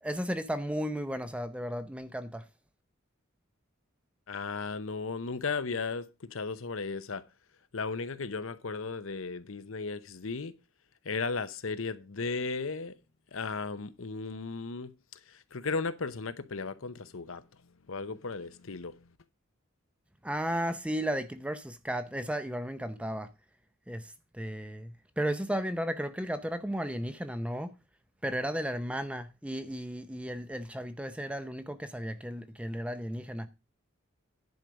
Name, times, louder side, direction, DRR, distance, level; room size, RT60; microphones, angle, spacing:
voice 1, 0.0-2.4 20.2-23.3 23.9-27.7 28.2-33.5, equal, 5° right, 0.7 m, -34 dB
voice 2, 4.3-7.2 7.7-10.5 11.0-12.9 13.3-14.9 15.3-17.4 17.9-19.0, left 4 dB, 65° left, 0.8 m, -35 dB
10.5 x 5.1 x 6.2 m
head